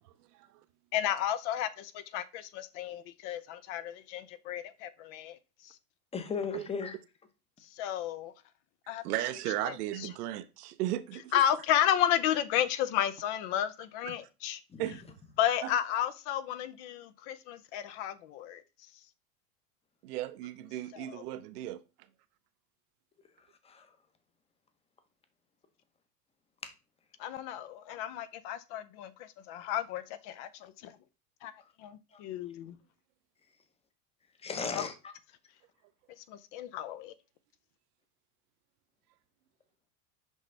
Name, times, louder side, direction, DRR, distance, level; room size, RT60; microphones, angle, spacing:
voice 1, 0.9-5.4 5.6-5.7 7.8-8.3 8.9-9.0 9.6-9.7 11.3-14.6 15.4-18.6 20.9-21.2 27.2-29.1 29.5-30.9 31.4-31.5 31.8-32.8 34.8-34.9 36.3-37.1, left 11 dB, 50° left, 0.7 m, -32 dB
voice 2, 6.1-7.0 14.7-14.8 23.6-23.9 26.6-26.7 32.1-32.2 34.4-35.1, left 5 dB, 15° left, 0.8 m, -36 dB
voice 3, 9.0-11.5 14.0-14.2 14.8-15.0 15.6-15.7 20.0-21.8, right 14 dB, 85° right, 0.7 m, -36 dB
6.4 x 5.4 x 3.3 m
supercardioid pair, 140°, 45 cm